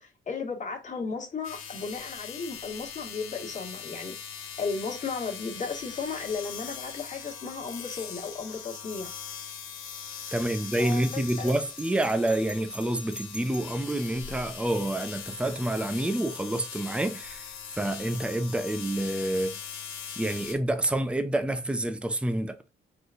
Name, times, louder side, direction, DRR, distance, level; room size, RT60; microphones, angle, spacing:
voice 1, 0.0-4.2 4.6-9.1 10.8-11.6, left 4 dB, 35° left, 1.9 m, -35 dB
sound 1, 1.4-20.5, left 7 dB, 85° left, 1.4 m, -41 dB
voice 2, 10.3-19.6 20.2-22.6, right 1 dB, 5° right, 0.6 m, -28 dB
Bell, 10.4-14.0, left 1 dB, 10° left, 1.1 m, -43 dB
4.9 x 4.1 x 2.5 m
cardioid pair, 115°, 20 cm